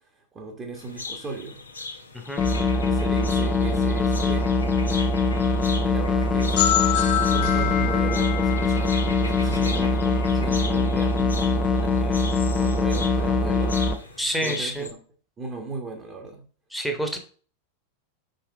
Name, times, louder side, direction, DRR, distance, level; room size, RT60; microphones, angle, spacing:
voice 1, 0.3-1.6 2.9-4.5 5.8-15.0 15.4-16.4, right 3 dB, 20° right, 0 dB, 1.4 m, -36 dB
sound 1, 0.7-14.9, left 3 dB, 75° left, 1.0 m, -39 dB
sound 2, 2.4-13.9, left 3 dB, 25° left, 0.8 m, -23 dB
sound 3, 6.6-10.2, left 11 dB, 50° left, 1.3 m, -27 dB
voice 2, 14.2-14.9 16.7-17.2, equal, ahead, 4 dB, 1.4 m, -28 dB
5.5 x 5.2 x 3.6 m, 0.41 s
figure-of-eight pair, 90°, 0 cm